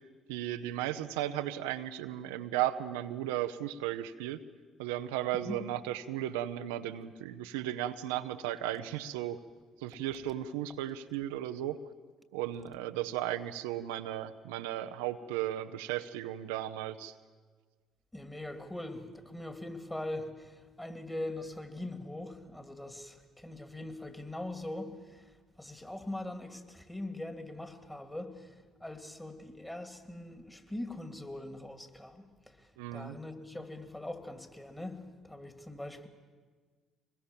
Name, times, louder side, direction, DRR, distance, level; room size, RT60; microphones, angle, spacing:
voice 1, 0.3-4.4 4.8-9.4 9.8-11.8 12.3-17.1 32.8-33.2, right 12 dB, 80° right, 9 dB, 0.7 m, -35 dB
voice 2, 18.1-25.3 25.6-36.1, left 1 dB, 10° left, 7 dB, 2.9 m, -42 dB
24.0 x 21.0 x 7.4 m, 1.5 s
hypercardioid pair, 55°, 0 cm